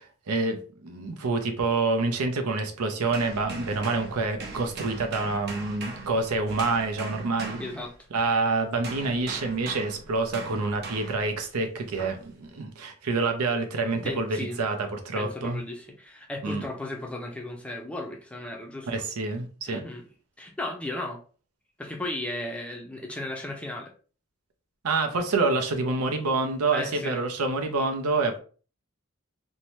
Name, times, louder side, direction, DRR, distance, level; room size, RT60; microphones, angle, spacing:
voice 1, 0.3-7.6 8.1-15.6 16.4-16.6 18.9-19.8 24.8-28.4, right 3 dB, 90° right, 5 dB, 0.6 m, -27 dB
sound 1, 3.1-8.3 8.8-11.3 12.0-12.3, right 3 dB, 45° right, 0.6 m, -40 dB
voice 2, 7.6-7.9 14.0-14.6 15.1-19.0 19.7-20.0 20.4-21.2 21.8-23.9 26.7-27.2, left 1 dB, 5° left, 1 dB, 0.4 m, -35 dB
2.7 x 2.2 x 3.0 m, 0.39 s
head